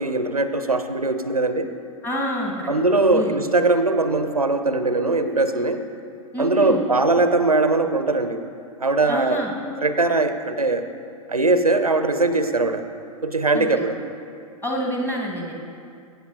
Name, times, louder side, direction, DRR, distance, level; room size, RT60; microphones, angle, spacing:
voice 1, 0.0-1.7 2.7-5.8 6.4-8.4 8.8-9.4 9.8-10.9 11.3-12.8 13.2-14.0, right 2 dB, 90° right, 9 dB, 0.5 m, -21 dB
voice 2, 2.0-2.7 3.1-3.4 6.3-6.8 9.1-9.5 13.5-13.9 14.6-15.5, equal, 10° left, -1 dB, 1.5 m, -27 dB
15.0 x 8.1 x 2.7 m, 2.4 s
figure-of-eight pair, 100°, 19 cm